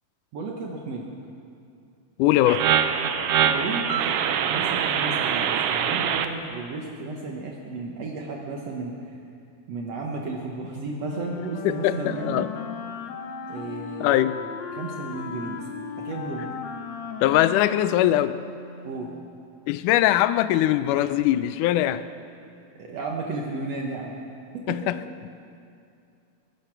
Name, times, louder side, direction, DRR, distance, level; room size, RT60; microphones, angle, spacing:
voice 1, 0.3-1.1 3.4-4.2 4.5-9.2 9.7-12.5 13.5-14.3 14.7-15.7 16.0-16.6 18.8-19.1 21.7-21.8 22.8-24.2 24.5-24.8, right 3 dB, 65° right, -1 dB, 2.1 m, -33 dB
voice 2, 2.2-2.7 11.6-12.5 14.0-14.4 17.2-18.4 19.7-22.0 24.7-25.0, left 13 dB, 85° left, 13 dB, 2.1 m, -21 dB
sound 1, 2.5-6.3, right 8 dB, 90° right, 1.2 m, -23 dB
Wind instrument woodwind instrument, 11.0-19.2, left 6 dB, 65° left, 2.2 m, -37 dB
21.5 x 10.5 x 6.0 m, 2.5 s
omnidirectional pair, 3.5 m